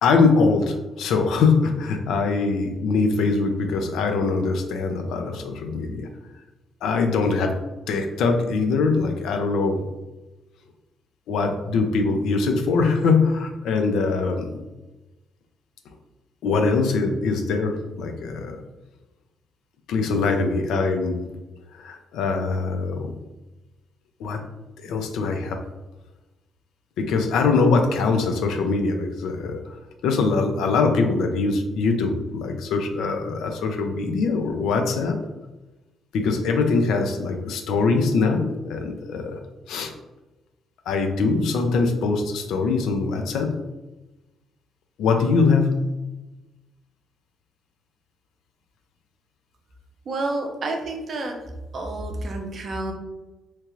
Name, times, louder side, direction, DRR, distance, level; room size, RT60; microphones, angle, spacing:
voice 1, 0.0-6.1 6.8-7.5 7.9-9.8 11.3-14.6 16.4-18.6 19.9-21.3 21.7-23.1 24.2-24.4 24.8-25.6 27.0-29.7 30.0-35.2 36.1-39.4 39.7-39.9 40.9-43.5 45.0-45.8, left 4 dB, 85° left, 5 dB, 0.4 m, -22 dB
voice 2, 50.1-51.4 51.7-52.9, right 2 dB, 50° right, 3 dB, 0.6 m, -29 dB
2.9 x 2.4 x 3.0 m, 1.1 s
cardioid pair, 90°, 0 cm